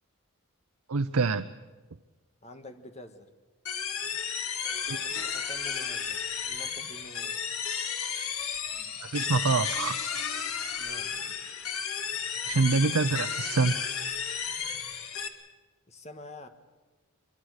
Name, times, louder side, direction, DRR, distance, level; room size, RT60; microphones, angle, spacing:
voice 1, 0.9-1.5 4.9-5.0 9.1-10.0 12.4-13.8, right 4 dB, 90° right, 10 dB, 0.7 m, -26 dB
voice 2, 2.4-3.3 5.0-7.4 10.6-11.1 15.9-16.5, left 2 dB, 30° left, 7 dB, 1.6 m, -47 dB
sound 1, 3.7-15.3, left 7 dB, 90° left, 1.9 m, -33 dB
25.0 x 23.5 x 6.5 m, 1.2 s
head